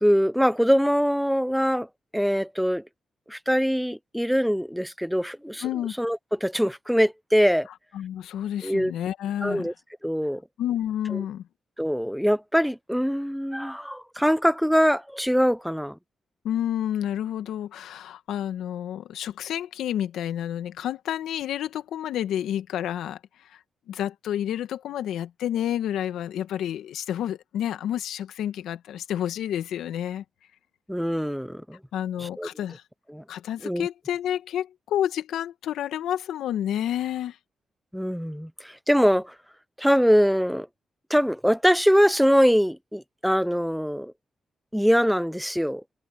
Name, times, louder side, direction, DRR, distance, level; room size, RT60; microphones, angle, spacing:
voice 1, 0.0-1.9 2.1-2.8 3.3-5.6 6.0-7.7 8.6-8.9 9.4-9.7 10.0-10.4 11.8-16.0 30.9-31.8 32.2-32.5 33.1-33.2 33.6-33.9 37.9-39.3 39.8-40.7 41.1-44.1 44.7-45.8, equal, ahead, 0.6 m, -23 dB
voice 2, 5.6-6.0 7.9-9.7 10.6-11.5 16.4-23.6 23.9-30.2 31.9-32.8 33.3-37.4, left 11 dB, 80° left, 1.7 m, -30 dB
supercardioid pair, 45°, 0 cm